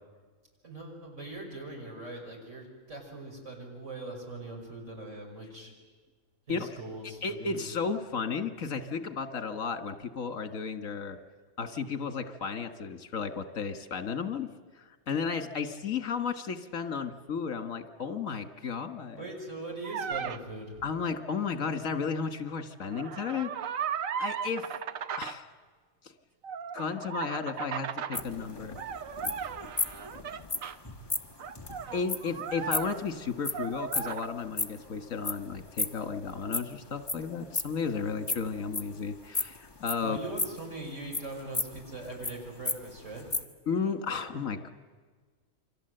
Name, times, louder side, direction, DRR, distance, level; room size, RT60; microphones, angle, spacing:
voice 1, 0.6-5.7 6.5-7.6 19.1-20.8 40.0-43.3, right 2 dB, 65° right, 0 dB, 6.4 m, -41 dB
voice 2, 7.2-11.2 11.6-19.3 20.8-23.5 24.2-24.7 25.2-25.5 26.7-28.8 31.9-40.2 43.7-44.7, left 5 dB, 75° left, 8 dB, 1.9 m, -33 dB
sound 1, 19.8-20.4 22.8-25.4 26.4-28.2 28.8-30.8 31.4-33.3 33.5-34.3, right 7 dB, 80° right, 1.4 m, -36 dB
sound 2, 28.1-34.9 35.2-37.2 37.5-38.9 39.3-40.7 41.1-42.3 42.7-42.8 43.0-43.4, left 3 dB, 20° left, 1.3 m, -33 dB
29.0 x 24.0 x 7.9 m, 1.5 s
omnidirectional pair, 1.4 m